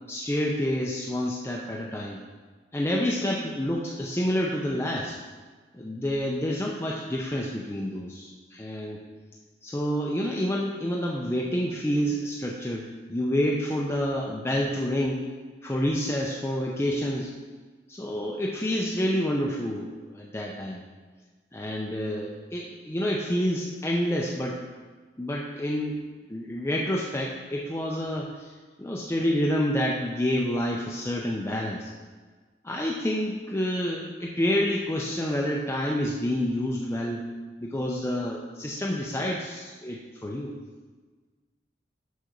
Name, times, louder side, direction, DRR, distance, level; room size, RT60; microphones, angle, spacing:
voice 1, 0.1-2.2 2.7-5.2 5.7-9.0 9.6-15.2 15.6-17.3 17.9-20.8 21.5-24.6 25.2-26.0 26.3-28.5 28.8-31.9 32.6-37.2 37.6-40.5, equal, 15° left, -2 dB, 0.6 m, -28 dB
6.4 x 5.9 x 6.6 m, 1.4 s
head